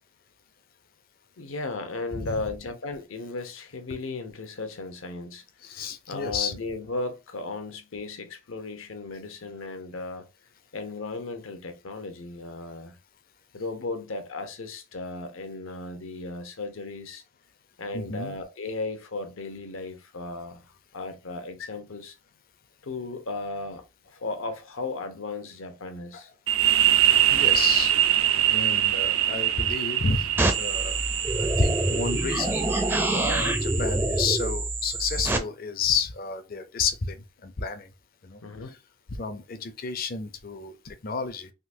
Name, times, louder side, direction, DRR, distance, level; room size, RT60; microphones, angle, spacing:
voice 1, 1.4-10.3 10.7-12.9 13.5-17.2 17.8-20.7 20.9-22.2 22.8-26.3 38.4-38.7, left 3 dB, 75° left, 0.8 m, -36 dB
voice 2, 2.1-2.4 5.6-6.5 17.9-18.3 26.1-26.2 27.3-28.0 28.5-31.0 31.4-32.6 33.1-37.2 37.4-37.9 38.2-38.4 39.1-41.5, left 5 dB, 45° left, 0.5 m, -31 dB
sound 1, 26.5-33.9, right 12 dB, 80° right, 0.6 m, -24 dB
sound 2, 30.4-35.4, right 2 dB, 10° right, 0.4 m, -26 dB
3.7 x 2.6 x 2.6 m
head